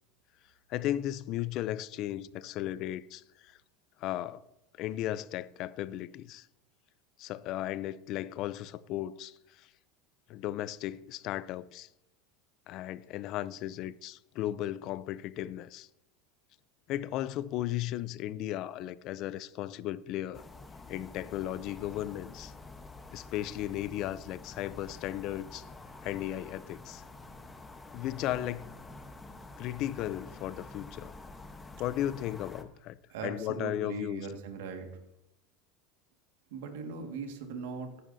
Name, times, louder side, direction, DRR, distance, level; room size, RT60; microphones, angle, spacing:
voice 1, 0.7-3.6 4.0-4.4 4.8-6.5 7.2-9.7 10.3-11.9 12.7-15.9 16.9-20.4 20.9-22.5 23.1-25.7 26.0-27.0 27.9-28.7 29.6-31.1 31.8-34.3, left 13 dB, 50° left, 0.5 m, -35 dB
sound 1, 20.3-32.6, left 3 dB, 15° left, 1.0 m, -48 dB
voice 2, 33.1-34.9 36.5-38.0, right 4 dB, 80° right, 1.8 m, -39 dB
16.0 x 10.5 x 2.7 m
supercardioid pair, 115°, 0 cm